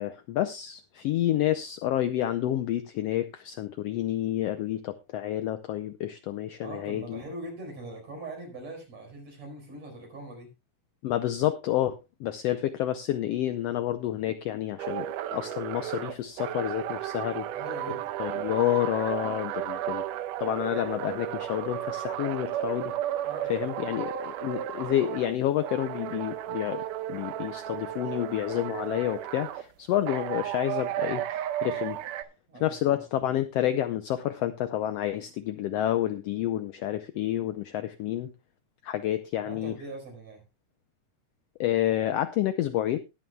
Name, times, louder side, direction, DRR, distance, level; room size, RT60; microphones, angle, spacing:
voice 1, 0.0-7.2 11.0-15.1 15.3-17.5 18.2-20.0 20.4-22.9 23.5-26.8 27.1-32.0 32.6-38.3 38.8-39.7 41.6-43.0, left 12 dB, 85° left, 10 dB, 1.4 m, -29 dB
voice 2, 6.6-10.5 17.5-18.1 23.2-23.9 32.5-33.0 39.4-40.4, right 2 dB, 55° right, 2 dB, 6.0 m, -42 dB
sound 1, 14.8-25.3 25.6-29.6 30.1-32.2, right 12 dB, 90° right, 2.3 m, -34 dB
20.5 x 8.5 x 2.3 m, 0.27 s
omnidirectional pair, 3.6 m